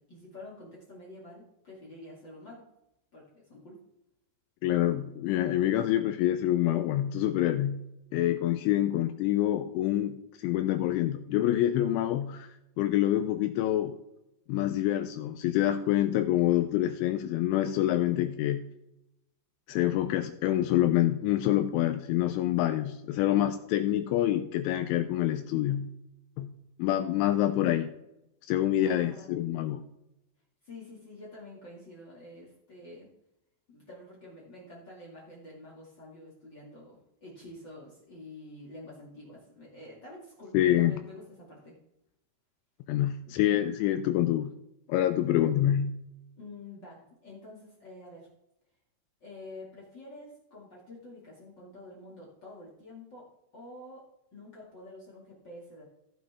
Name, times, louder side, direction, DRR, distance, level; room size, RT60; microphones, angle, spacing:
voice 1, 0.0-2.7 3.1-3.8 28.8-29.3 30.6-33.1 33.7-41.8 43.2-43.3 46.4-48.3 49.2-55.8, left 2 dB, 50° left, -3 dB, 1.2 m, -48 dB
voice 2, 4.6-7.8 8.1-12.5 12.8-14.0 14.5-18.7 19.7-25.9 26.4-26.5 26.8-27.9 28.4-29.8 40.5-41.0 42.9-44.5 44.9-45.9, left 12 dB, 85° left, 9 dB, 2.8 m, -26 dB
16.5 x 6.0 x 3.5 m, 0.86 s
omnidirectional pair, 5.9 m